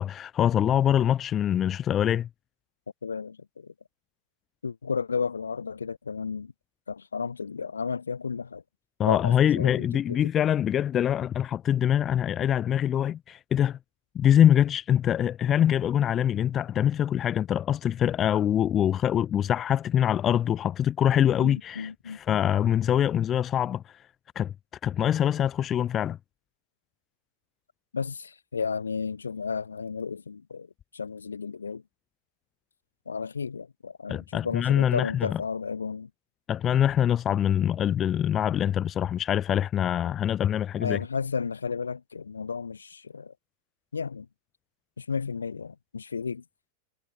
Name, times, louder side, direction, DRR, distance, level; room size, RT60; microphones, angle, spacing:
voice 1, 0.0-2.3 9.0-13.8 14.1-23.8 24.3-24.5 24.8-26.2 34.1-35.4 36.5-41.0, left 10 dB, 25° left, 1.0 m, -24 dB
voice 2, 3.0-3.7 4.6-6.5 6.9-8.6 9.0-10.3 21.4-22.2 27.9-30.7 30.9-31.8 33.1-36.1 40.8-43.3 43.9-44.3 45.0-46.4, left 5 dB, 75° left, 2.7 m, -33 dB
figure-of-eight pair, 90°, 0 cm